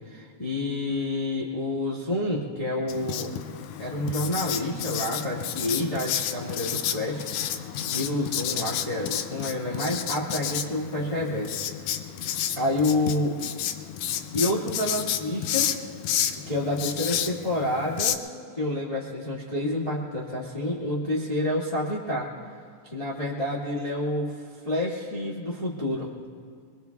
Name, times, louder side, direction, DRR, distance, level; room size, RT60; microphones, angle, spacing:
voice 1, 0.1-3.3 3.8-7.3 7.5-11.6 12.5-13.3 14.1-15.7 16.5-18.2 18.5-22.3 22.8-24.4 24.6-26.1, left 1 dB, 20° left, -8 dB, 1.0 m, -28 dB
Writing, 2.9-18.1, left 10 dB, 90° left, 1.7 m, -31 dB
24.0 x 23.5 x 2.4 m, 2.1 s
omnidirectional pair, 4.2 m